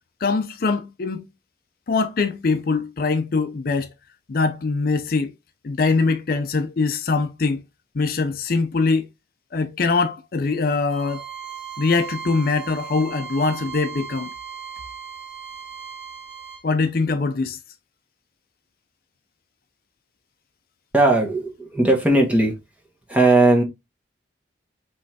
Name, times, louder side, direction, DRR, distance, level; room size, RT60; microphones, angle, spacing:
voice 1, 0.2-1.2 1.9-3.9 4.3-5.3 5.6-7.6 7.9-9.1 9.5-11.2 11.8-14.3 16.6-17.6, left 4 dB, 50° left, 0.5 m, -22 dB
Bowed string instrument, 10.9-16.6, right 7 dB, 65° right, 1.7 m, -37 dB
voice 2, 20.9-22.6 23.1-23.6, right 2 dB, 10° right, 1.1 m, -17 dB
5.4 x 3.2 x 2.7 m
head